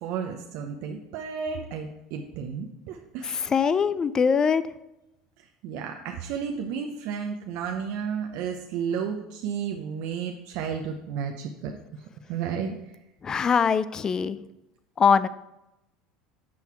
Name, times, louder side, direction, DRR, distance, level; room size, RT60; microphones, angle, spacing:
voice 1, 0.0-3.5 5.4-12.7 13.5-13.7, right 7 dB, 65° right, 2 dB, 0.7 m, -33 dB
voice 2, 3.2-4.6 13.2-14.4 15.0-15.3, left 6 dB, 30° left, 16 dB, 0.4 m, -22 dB
7.6 x 5.7 x 4.5 m, 0.92 s
hypercardioid pair, 80°, 2 cm